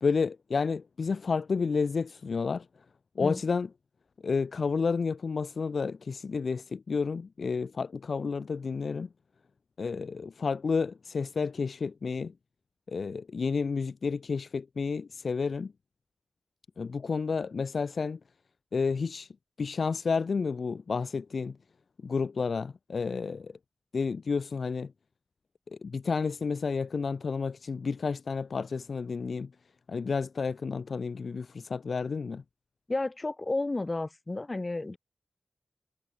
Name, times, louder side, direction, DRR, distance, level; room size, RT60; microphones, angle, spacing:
voice 1, 0.0-2.6 3.2-3.7 4.2-9.1 9.8-12.3 12.9-15.7 16.8-18.2 18.7-19.3 19.6-21.6 22.0-23.5 23.9-24.9 25.8-29.5 29.9-32.4, left 5 dB, 65° left, 1.4 m, -30 dB
voice 2, 32.9-35.0, left 2 dB, 30° left, 4.9 m, -32 dB
wide cardioid pair, 75°, 0 cm